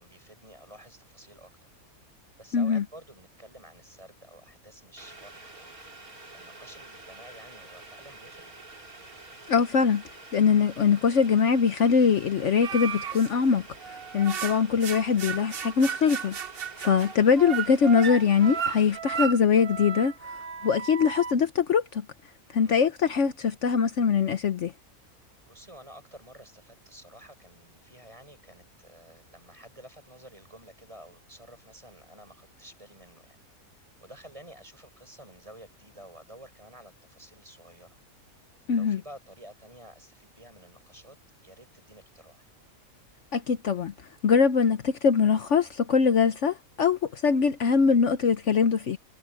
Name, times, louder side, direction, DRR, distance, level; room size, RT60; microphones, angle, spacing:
voice 1, 0.0-1.7 2.4-5.7 6.3-8.5 16.8-17.0 22.6-22.8 25.4-33.4 34.0-38.0 38.7-41.2 41.4-42.5, right 1 dB, 20° right, 7.6 m, -51 dB
voice 2, 2.5-2.8 9.5-10.0 10.3-13.6 13.9-16.4 16.8-20.1 20.6-22.0 22.5-24.7 38.7-39.0 43.3-43.9 44.2-49.0, left 6 dB, 60° left, 1.1 m, -22 dB
Boiling, 5.0-19.0, right 2 dB, 85° right, 4.1 m, -48 dB
sound 1, 12.6-13.3 13.8-21.3, right 7 dB, 50° right, 1.0 m, -34 dB
omnidirectional pair, 1.5 m